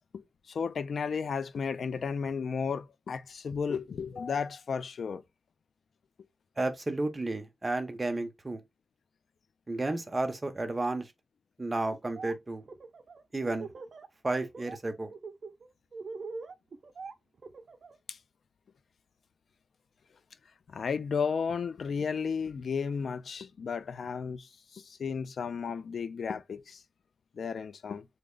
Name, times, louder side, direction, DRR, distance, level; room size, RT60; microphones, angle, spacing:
voice 1, 0.5-5.2 18.1-18.2 20.7-26.8 27.4-28.1, left 6 dB, 85° left, 0.4 m, -33 dB
voice 2, 6.6-8.6 9.7-11.1 11.6-12.6 13.3-13.7 14.2-15.1, right 2 dB, 30° right, 0.8 m, -32 dB
Laughter, 11.9-12.3 12.6-14.1 14.4-14.8 15.1-17.9, right 4 dB, 70° right, 0.5 m, -42 dB
3.5 x 2.1 x 3.6 m
wide cardioid pair, 90°, 0 cm